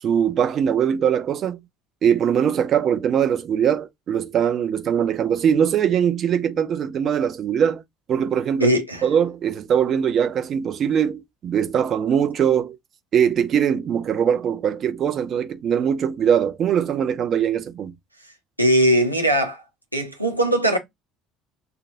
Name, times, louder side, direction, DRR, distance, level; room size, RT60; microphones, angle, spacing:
voice 1, 0.0-1.6 2.0-7.8 8.1-8.7 9.0-12.8 13.1-17.9, right 8 dB, 45° right, 0.7 m, -21 dB
voice 2, 8.6-9.0 18.6-19.6 19.9-20.8, equal, 90° right, 0.9 m, -19 dB
6.8 x 2.9 x 2.6 m
figure-of-eight pair, 55°, 0 cm